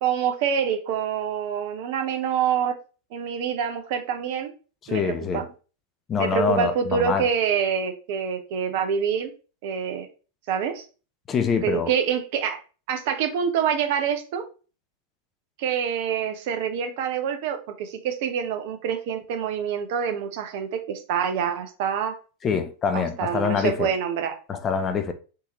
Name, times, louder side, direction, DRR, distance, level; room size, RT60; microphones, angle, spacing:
voice 1, 0.0-2.7 3.1-4.5 4.9-5.4 6.2-9.3 9.6-10.1 10.5-10.8 11.6-12.6 12.9-14.4 15.6-22.1 22.9-24.3, right 7 dB, 50° right, 0.6 m, -26 dB
voice 2, 4.9-5.5 6.1-7.3 11.3-11.9 22.4-23.9 24.5-25.1, left 5 dB, 25° left, 0.4 m, -25 dB
3.7 x 2.7 x 2.8 m
figure-of-eight pair, 90°, 0 cm